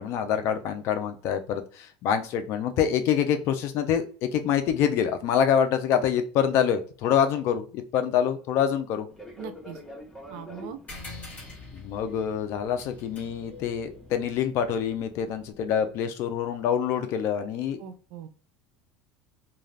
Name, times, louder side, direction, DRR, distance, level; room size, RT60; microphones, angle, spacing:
voice 1, 0.0-9.1 11.7-17.8, left 8 dB, 55° left, 8 dB, 0.5 m, -26 dB
Fixed-wing aircraft airplane, 9.1-15.5, left 1 dB, 5° left, 0.8 m, -47 dB
voice 2, 9.4-9.8 10.3-10.8 17.8-18.3, right 8 dB, 75° right, 9 dB, 0.5 m, -40 dB
sound 1, 10.9-15.8, left 3 dB, 25° left, 1.2 m, -46 dB
2.4 x 2.4 x 3.2 m, 0.39 s
supercardioid pair, 120°, 5 cm